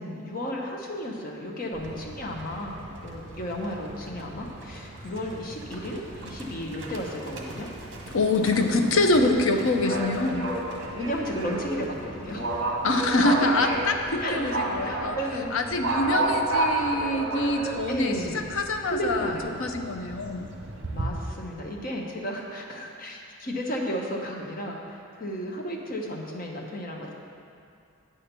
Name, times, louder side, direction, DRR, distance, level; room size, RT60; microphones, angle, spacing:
voice 1, 0.0-7.7 8.4-8.9 11.0-12.5 14.2-14.5 14.8-15.6 16.1-16.2 17.9-18.4 18.9-19.6 20.9-27.1, equal, 40° left, 0 dB, 0.9 m, -33 dB
Livestock farm animals working animals, 1.7-21.1, right 2 dB, 55° right, 1.1 m, -33 dB
voice 2, 8.1-10.5 12.8-15.2 15.5-18.1 18.5-19.3 19.6-20.5, left 2 dB, 65° left, 5 dB, 0.6 m, -25 dB
8.9 x 4.4 x 6.7 m, 2.5 s
head